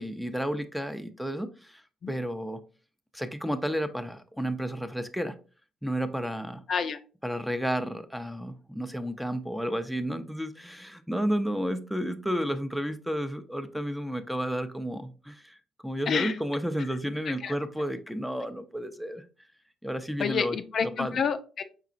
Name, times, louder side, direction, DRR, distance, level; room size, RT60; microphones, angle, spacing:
voice 1, 0.0-1.8 2.1-2.6 3.1-5.4 5.8-6.6 7.2-15.6 15.8-19.2 19.8-20.6 21.0-21.1, equal, ahead, 9 dB, 0.5 m, -32 dB
voice 2, 6.7-7.0 16.1-16.4 17.4-17.5 20.2-21.6, left 6 dB, 55° left, 9 dB, 0.4 m, -28 dB
4.8 x 3.6 x 2.4 m, 0.36 s
supercardioid pair, 60°, 0 cm